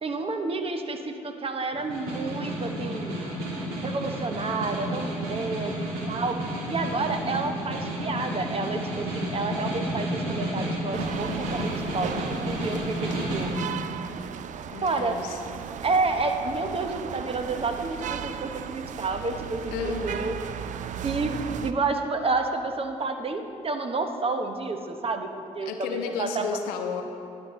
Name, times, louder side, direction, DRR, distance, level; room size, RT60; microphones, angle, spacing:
voice 1, 0.0-3.2 3.8-6.4 6.7-12.1 12.4-13.5 14.8-15.2 15.8-20.3 21.0-21.3 21.6-25.3 25.5-26.5, right 3 dB, 40° right, 6 dB, 0.9 m, -30 dB
Snare drum, 1.7-13.6, equal, 85° right, 1.5 m, -31 dB
sound 1, 10.9-21.7, right 8 dB, 55° right, 0.4 m, -36 dB
voice 2, 14.7-15.4 19.7-20.3 25.7-27.0, left 6 dB, 85° left, 4 dB, 0.8 m, -32 dB
11.5 x 9.4 x 3.1 m, 2.5 s
supercardioid pair, 55°, 15 cm